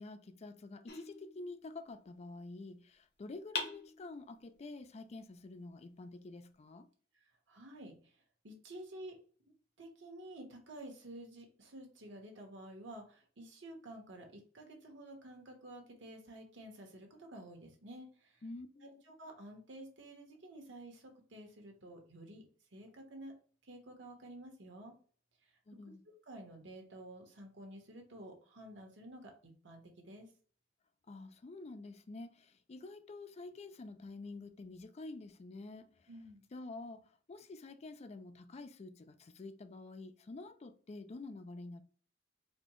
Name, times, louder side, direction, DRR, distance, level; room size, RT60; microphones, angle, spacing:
voice 1, 0.0-6.9 18.4-19.0 25.7-26.0 31.1-36.1 36.5-41.8, left 2 dB, 35° left, 0.4 m, -48 dB
sound 1, 0.9-2.0 3.5-4.6, left 4 dB, 55° left, 0.9 m, -43 dB
voice 2, 7.5-8.2 8.4-9.2 9.8-18.4 18.8-22.4 22.7-23.3 23.6-24.9 26.3-30.3 36.1-36.5, right 1 dB, 70° right, 1.2 m, -51 dB
4.2 x 2.2 x 3.0 m
head